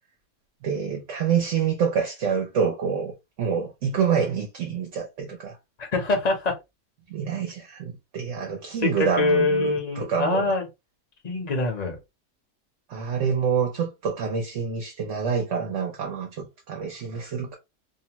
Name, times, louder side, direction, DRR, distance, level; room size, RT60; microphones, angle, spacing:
voice 1, 0.6-5.6 7.1-10.5 12.9-17.5, right 6 dB, 60° right, 0.9 m, -27 dB
voice 2, 5.8-6.6 8.8-10.6 11.2-12.0, left 3 dB, 35° left, 0.7 m, -24 dB
2.7 x 2.2 x 2.8 m
omnidirectional pair, 1.6 m